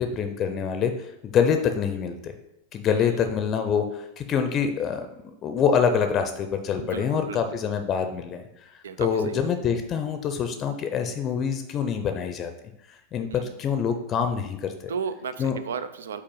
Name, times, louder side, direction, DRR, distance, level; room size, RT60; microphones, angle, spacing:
voice 1, 0.0-2.3 2.7-8.4 9.0-12.5 12.9-14.9 15.4-15.6, left 7 dB, 30° left, 7 dB, 0.6 m, -26 dB
voice 2, 2.9-3.5 6.8-7.4 8.8-9.4 13.3-13.6 14.9-16.2, right 6 dB, 65° right, 11 dB, 0.4 m, -35 dB
5.3 x 4.1 x 5.4 m, 0.85 s
figure-of-eight pair, 90°, 0 cm